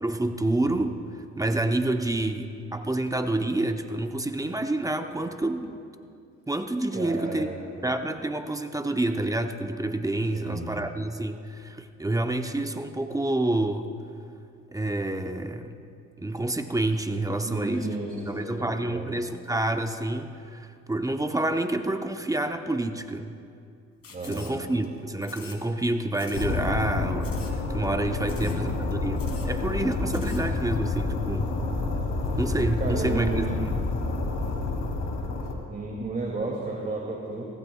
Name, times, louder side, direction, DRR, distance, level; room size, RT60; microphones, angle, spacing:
voice 1, 0.0-5.8 6.5-13.9 14.7-15.8 16.2-17.9 18.3-23.3 24.2-31.5 32.4-33.7, right 2 dB, 10° right, 6 dB, 0.8 m, -28 dB
voice 2, 6.9-7.6 10.3-10.7 17.4-19.1 24.1-24.5 28.2-28.8 32.8-33.7 35.7-37.5, right 2 dB, 30° right, -3 dB, 2.4 m, -33 dB
sound 1, 24.0-24.9 25.2-25.9 26.1-26.5 26.8-26.9 27.2-27.6 27.8-27.9 28.2-28.6 28.9-29.0 29.2-29.5 29.9-30.4, left 5 dB, 50° left, 2.6 m, -46 dB
sound 2, 26.3-35.5, left 3 dB, 80° left, 2.4 m, -29 dB
24.0 x 16.5 x 2.3 m, 2.4 s
cardioid pair, 90°, 30 cm